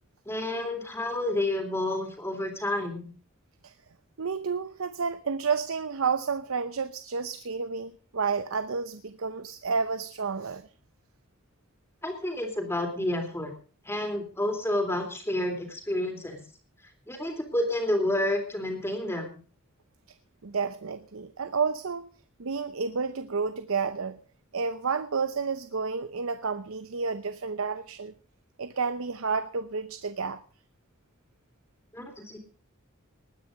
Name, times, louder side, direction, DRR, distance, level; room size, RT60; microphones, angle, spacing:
voice 1, 0.2-3.1 12.0-13.5 13.8-16.4 17.1-19.4 31.9-32.4, left 1 dB, 10° left, 3.3 m, -30 dB
voice 2, 4.2-10.7 20.1-20.2 20.4-22.1 22.4-24.2 24.5-28.1 28.6-30.4, right 5 dB, 80° right, 0.8 m, -30 dB
19.5 x 9.8 x 5.2 m
head